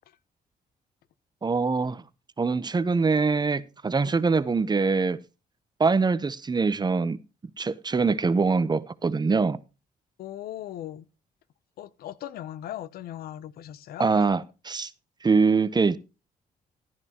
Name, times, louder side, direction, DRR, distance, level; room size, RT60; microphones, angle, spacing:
voice 1, 1.4-2.0 2.4-5.2 5.8-7.2 7.6-9.6 14.0-14.9 15.2-16.0, right 4 dB, 25° right, 0.8 m, -23 dB
voice 2, 10.2-11.1 11.8-14.1, left 12 dB, 80° left, 0.6 m, -38 dB
12.5 x 10.5 x 2.9 m
cardioid pair, 80°, 16 cm